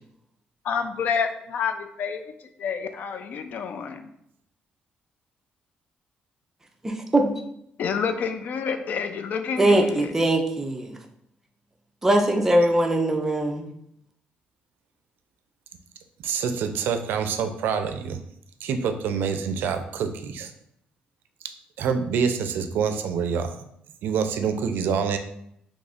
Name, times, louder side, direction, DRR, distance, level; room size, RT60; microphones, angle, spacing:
voice 1, 0.6-2.2 2.6-4.1 7.8-10.1, left 6 dB, 55° left, 8 dB, 0.3 m, -28 dB
voice 2, 6.8-7.4 9.6-11.0 12.0-13.7, right 1 dB, 10° right, 3 dB, 0.4 m, -21 dB
voice 3, 16.2-18.2 18.6-20.5 21.8-23.7 24.0-25.2, right 6 dB, 80° right, 8 dB, 0.4 m, -26 dB
2.9 x 2.4 x 4.1 m, 0.74 s
cardioid pair, 140°, 3 cm